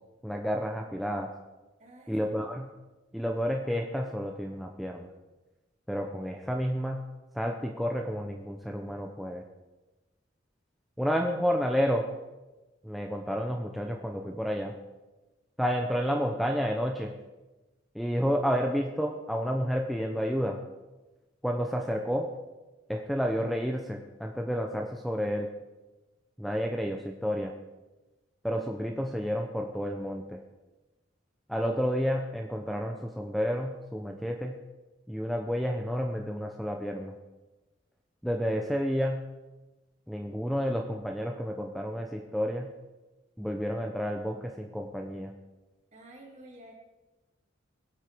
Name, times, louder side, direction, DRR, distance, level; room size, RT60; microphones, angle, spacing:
voice 1, 0.2-1.3 2.1-2.7 3.1-5.1 5.9-7.0 7.3-9.4 11.0-12.1 12.8-14.8 15.6-17.1 17.9-20.6 21.4-22.3 22.9-25.5 26.4-27.5 28.4-30.4 31.5-34.6 35.1-37.1 38.2-39.2 40.1-42.7 43.4-45.3, equal, ahead, 2 dB, 0.7 m, -30 dB
voice 2, 1.8-2.6 45.9-46.7, right 1 dB, 40° right, -2 dB, 3.2 m, -50 dB
21.5 x 8.6 x 4.6 m, 1.1 s
head